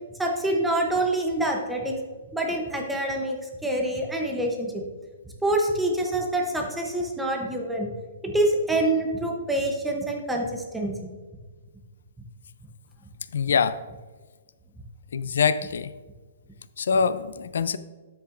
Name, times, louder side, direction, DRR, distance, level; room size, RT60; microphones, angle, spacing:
voice 1, 0.2-1.9 2.3-3.4 3.6-4.8 5.4-7.9 8.2-10.9, right 1 dB, 5° right, 1 dB, 0.8 m, -26 dB
voice 2, 13.3-13.8 15.1-15.9 16.8-17.8, left 6 dB, 80° left, 14 dB, 0.4 m, -24 dB
9.8 x 8.0 x 2.5 m, 1.3 s
hypercardioid pair, 170°, 0 cm